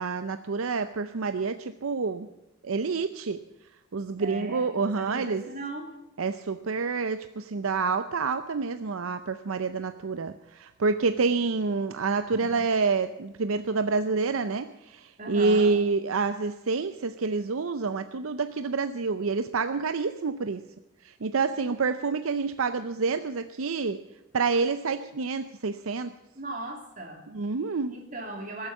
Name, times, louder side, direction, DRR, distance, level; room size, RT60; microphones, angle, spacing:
voice 1, 0.0-2.3 2.6-3.4 3.9-5.4 6.2-20.6 21.0-24.0 24.3-26.1 27.3-27.9, right 4 dB, 70° right, 10 dB, 0.6 m, -28 dB
voice 2, 4.2-5.9 12.3-12.5 15.2-15.7 21.6-21.7 26.3-27.2 27.9-28.7, right 2 dB, 35° right, 2 dB, 3.0 m, -38 dB
19.0 x 8.0 x 7.3 m, 0.99 s
head